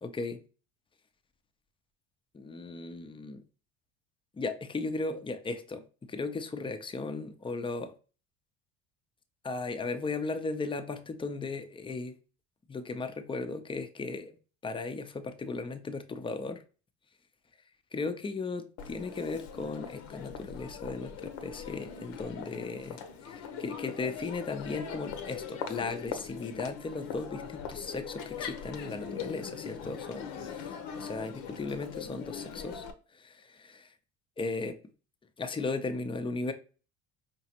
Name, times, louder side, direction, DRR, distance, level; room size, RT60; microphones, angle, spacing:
voice 1, 0.0-0.4 2.3-3.4 4.3-7.9 9.4-12.2 12.7-14.4 14.6-16.6 17.9-30.6 30.9-32.8 33.1-33.9 34.4-34.8 35.4-36.5, left 3 dB, 15° left, 0.6 m, -36 dB
Crowd, 18.8-32.9, left 7 dB, 60° left, 0.8 m, -41 dB
4.8 x 2.9 x 2.9 m
hypercardioid pair, 70°, 33 cm